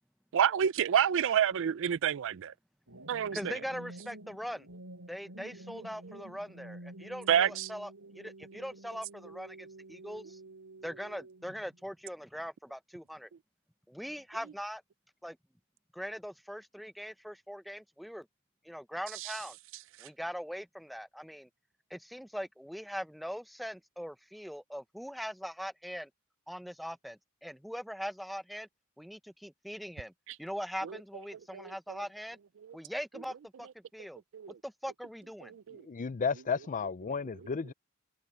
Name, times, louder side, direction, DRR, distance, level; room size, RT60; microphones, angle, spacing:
voice 1, 0.3-2.5 3.1-3.5 7.3-7.7 19.2-19.3 20.0-20.1 30.8-31.0 31.5-32.0 32.6-32.8 34.3-34.6 35.5-35.8, right 9 dB, 60° right, 0.4 m, -29 dB
sound 1, 2.9-11.8, right 1 dB, 85° right, 4.6 m, -50 dB
voice 2, 3.3-4.7 5.1-10.4 10.8-13.3 13.9-14.8 15.2-15.4 15.9-18.3 18.6-19.6 20.0-21.5 21.9-26.1 26.5-28.7 29.0-30.1 30.4-32.4 32.7-34.2 34.6-35.5, equal, ahead, 0.7 m, -41 dB
voice 3, 35.8-37.7, left 5 dB, 35° left, 0.5 m, -33 dB
head